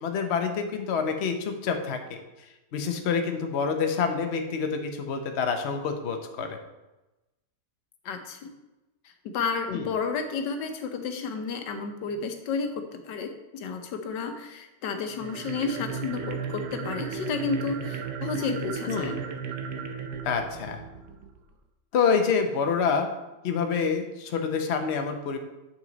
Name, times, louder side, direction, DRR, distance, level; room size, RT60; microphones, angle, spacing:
voice 1, 0.0-2.2 2.7-6.5 9.7-9.9 18.9-19.2 20.2-20.8 21.9-23.1 23.4-25.4, left 6 dB, 50° left, 5 dB, 0.9 m, -27 dB
voice 2, 8.0-8.5 9.3-19.2, left 5 dB, 80° left, 6 dB, 1.5 m, -31 dB
sound 1, 15.1-21.4, right 6 dB, 70° right, 1.3 m, -35 dB
8.0 x 6.0 x 4.0 m, 1.0 s
omnidirectional pair, 1.9 m